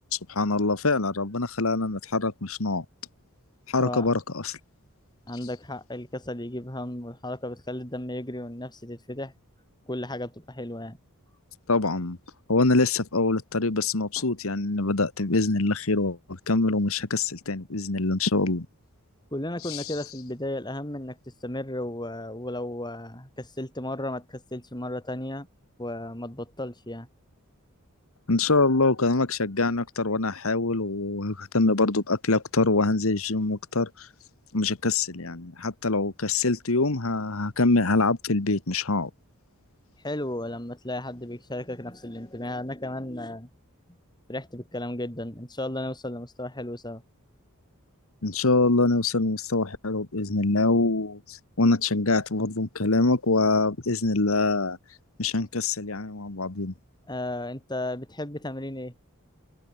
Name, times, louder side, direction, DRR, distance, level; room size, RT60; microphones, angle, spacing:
voice 1, 0.1-2.8 3.7-4.6 11.7-12.2 12.5-18.7 19.6-20.0 28.3-34.1 34.5-39.1 48.2-54.8 55.2-56.7, left 3 dB, 65° left, 1.5 m, -24 dB
voice 2, 3.8-4.1 5.3-9.3 9.9-11.0 14.2-14.3 19.3-25.5 25.8-27.1 40.0-43.5 44.3-47.0 57.1-58.9, left 1 dB, 20° left, 5.3 m, -34 dB
head